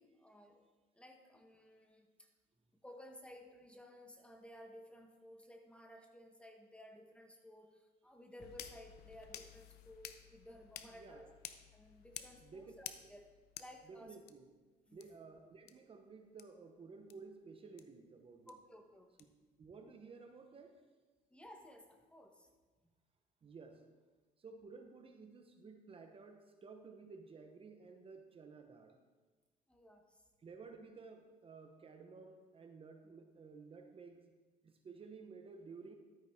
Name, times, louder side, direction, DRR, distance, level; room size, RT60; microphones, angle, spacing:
voice 1, 0.0-2.3 2.8-11.3 11.7-13.3 13.6-14.2 14.9-15.1 18.5-19.1 21.3-22.5 29.7-30.2, equal, 5° left, 3 dB, 1.2 m, -57 dB
sound 1, 8.4-14.3 15.0-15.1 15.7-15.8 16.4-16.5 17.1-17.2 17.8-17.9 18.5-18.6 19.2-19.3, left 11 dB, 70° left, 0.6 m, -52 dB
voice 2, 10.9-11.3 12.4-12.7 13.0-13.1 13.9-14.5 14.9-18.6 19.6-20.9 23.4-23.8 24.4-29.0 30.4-34.3 34.6-35.9, right 4 dB, 35° right, 5 dB, 0.9 m, -54 dB
12.5 x 8.8 x 3.6 m, 1.3 s
cardioid pair, 110°, 17 cm